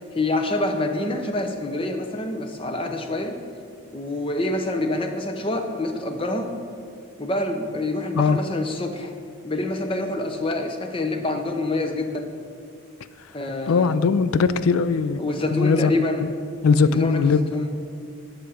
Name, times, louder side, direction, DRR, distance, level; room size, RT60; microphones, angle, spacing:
voice 1, 0.1-3.4 3.9-6.5 7.2-9.1 9.4-12.3 13.3-14.1 15.2-16.3 16.8-17.7, left 2 dB, 25° left, 5 dB, 0.6 m, -26 dB
voice 2, 13.7-15.2 15.5-15.9 16.6-17.5, left 5 dB, 75° left, 14 dB, 0.3 m, -19 dB
9.2 x 5.8 x 5.0 m, 2.3 s
head